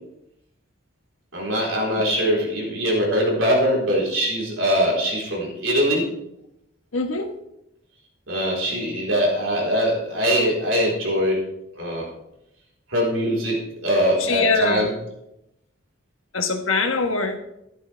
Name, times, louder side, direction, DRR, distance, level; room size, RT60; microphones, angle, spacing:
voice 1, 1.3-6.1 8.3-11.4 11.8-12.1 12.9-14.9, equal, 90° right, -3 dB, 4.2 m, -22 dB
voice 2, 2.0-2.3 6.9-7.3 14.2-14.9 16.3-17.4, left 3 dB, 90° left, 6 dB, 1.4 m, -23 dB
13.0 x 11.0 x 3.5 m, 0.84 s
head